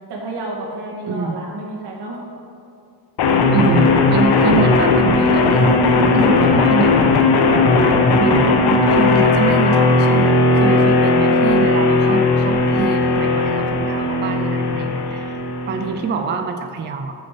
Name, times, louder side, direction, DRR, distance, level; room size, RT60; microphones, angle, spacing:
voice 1, 0.1-2.4 8.2-8.5, right 2 dB, 80° right, -2 dB, 2.1 m, -31 dB
voice 2, 1.1-1.5 3.5-7.1 8.2-15.4 15.7-17.1, right 5 dB, 30° right, 7 dB, 0.4 m, -25 dB
sound 1, 3.2-16.2, left 3 dB, 70° left, 1.0 m, -16 dB
7.1 x 6.2 x 6.9 m, 2.5 s
wide cardioid pair, 170°, 40 cm